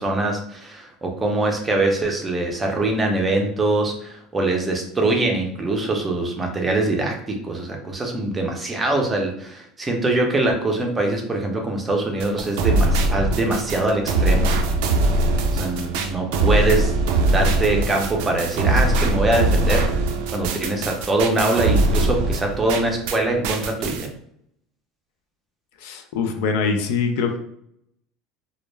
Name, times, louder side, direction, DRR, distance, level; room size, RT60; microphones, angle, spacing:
voice 1, 0.0-14.5 15.5-16.9 17.3-19.9 20.3-24.1, right 2 dB, 15° right, 2 dB, 0.5 m, -23 dB
sound 1, 12.2-23.2 23.4-24.1, right 2 dB, 75° right, 0.4 m, -21 dB
voice 2, 25.8-27.4, left 5 dB, 75° left, 5 dB, 0.4 m, -23 dB
2.1 x 2.0 x 3.2 m, 0.71 s
supercardioid pair, 135°, 0 cm